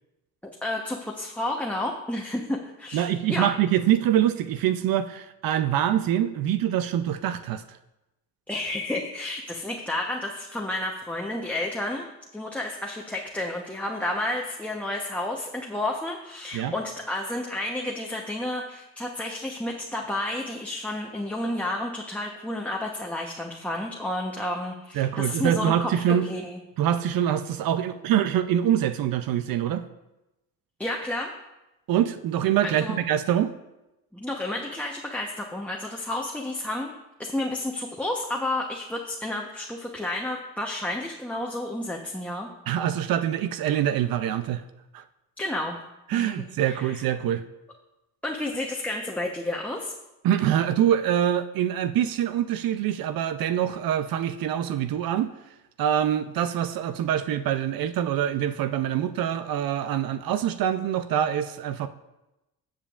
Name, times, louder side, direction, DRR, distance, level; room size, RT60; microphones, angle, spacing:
voice 1, 0.6-3.5 8.5-12.1 12.3-26.6 30.8-31.3 32.6-33.0 34.1-36.9 37.2-42.5 45.4-45.8 46.1-46.3 46.6-47.0 48.2-49.9, left 1 dB, 5° left, -1 dB, 1.0 m, -31 dB
voice 2, 2.9-7.8 16.5-16.7 24.9-26.2 26.8-29.8 31.9-33.5 42.7-44.6 44.9-45.0 46.1-47.4 50.2-55.3 55.8-61.9, right 10 dB, 65° right, 11 dB, 0.6 m, -25 dB
14.0 x 7.4 x 2.5 m, 0.97 s
supercardioid pair, 75°, 38 cm